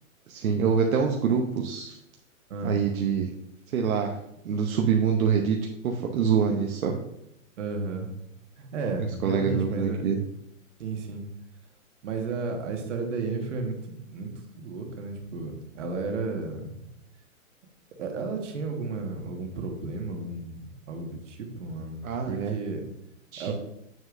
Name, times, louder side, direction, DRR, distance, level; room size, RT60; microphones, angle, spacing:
voice 1, 0.3-2.0 2.6-3.3 3.7-4.1 4.4-5.6 5.8-7.0 9.2-10.2 22.0-22.6 23.3-23.5, right 6 dB, 75° right, 2 dB, 0.9 m, -25 dB
voice 2, 7.6-8.1 8.6-10.0 10.8-11.2 12.0-16.9 18.0-20.6 20.9-22.8 23.4-23.5, right 4 dB, 55° right, 2 dB, 1.6 m, -33 dB
7.2 x 6.4 x 2.6 m, 0.81 s
hypercardioid pair, 165°, 42 cm